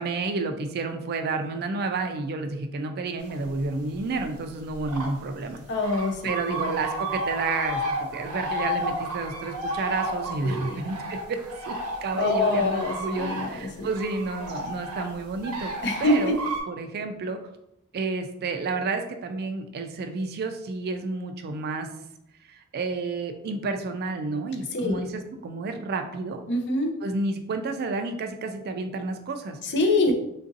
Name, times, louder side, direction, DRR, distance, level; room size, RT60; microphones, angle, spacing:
voice 1, 0.0-5.6 6.2-11.4 11.7-11.8 12.0-15.7 16.0-16.4 16.7-17.4 17.9-21.9 22.5-26.4 27.0-29.6 30.1-30.2, right 3 dB, 45° right, 6 dB, 0.3 m, -30 dB
sound 1, 3.3-3.7 4.1-5.2 5.4-5.5 5.8-16.6, right 1 dB, 80° right, 0.7 m, -32 dB
voice 2, 5.7-6.7 10.4-10.8 12.1-13.9 15.8-16.3 24.7-25.0 26.5-26.9 29.6-30.1, left 2 dB, 55° left, 3 dB, 0.5 m, -25 dB
3.7 x 2.5 x 2.6 m, 0.81 s
head